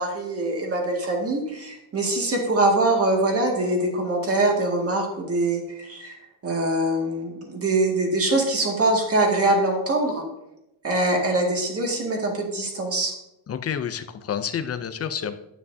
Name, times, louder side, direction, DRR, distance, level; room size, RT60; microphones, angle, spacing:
voice 1, 0.0-6.2 6.4-10.2 10.8-13.1, right 2 dB, 30° right, 0 dB, 2.1 m, -23 dB
voice 2, 13.5-15.4, left 8 dB, 30° left, 10 dB, 0.5 m, -29 dB
9.8 x 9.5 x 2.7 m, 0.89 s
cardioid pair, 160°, 49 cm